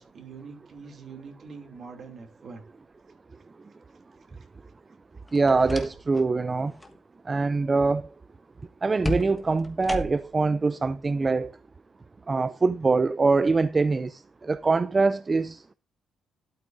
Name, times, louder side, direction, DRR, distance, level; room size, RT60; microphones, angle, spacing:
voice 1, 0.0-2.7 4.4-4.5, right 5 dB, 55° right, 2.7 m, -44 dB
door open close, 5.3-6.3 6.6-7.0 9.0-10.4, left 1 dB, 10° left, 1.4 m, -34 dB
voice 2, 5.3-6.7 7.3-8.1 8.8-11.5 12.3-15.6, right 3 dB, 30° right, 0.3 m, -24 dB
12.0 x 8.5 x 2.6 m
cardioid pair, 90°, 0 cm